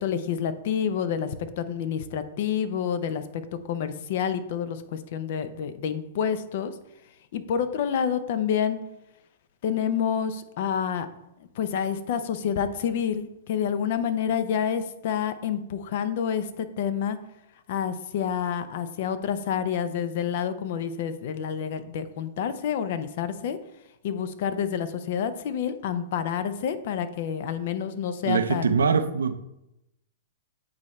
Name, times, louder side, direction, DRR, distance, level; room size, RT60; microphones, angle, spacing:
voice 1, 0.0-3.4 3.7-6.7 7.3-8.8 9.6-11.1 11.6-17.2 17.7-23.6 24.0-28.7, left 8 dB, 60° left, 0.6 m, -28 dB
voice 2, 28.2-29.3, right 5 dB, 90° right, 0.5 m, -23 dB
8.5 x 4.3 x 3.2 m
hypercardioid pair, 125°, 0 cm